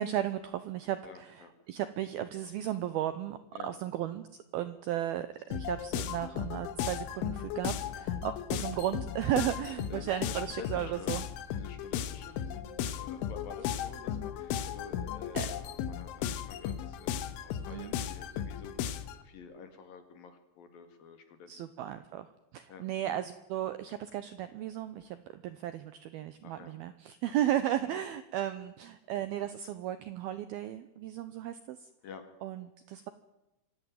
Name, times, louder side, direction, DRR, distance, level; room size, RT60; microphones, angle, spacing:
voice 1, 0.0-11.3 15.3-15.5 17.7-17.9 21.5-22.3 22.5-31.9 32.4-33.1, right 12 dB, 80° right, 13 dB, 2.2 m, -35 dB
voice 2, 1.0-1.5 3.5-3.7 7.7-8.0 8.6-8.7 9.9-11.1 11.5-21.7 22.7-22.9 26.4-26.7 27.3-27.4 27.8-28.0 32.0-32.2, left 6 dB, 55° left, 8 dB, 3.4 m, -49 dB
sound 1, 5.5-19.2, left 10 dB, 80° left, 3.6 m, -36 dB
25.5 x 16.0 x 9.3 m, 0.99 s
omnidirectional pair, 5.5 m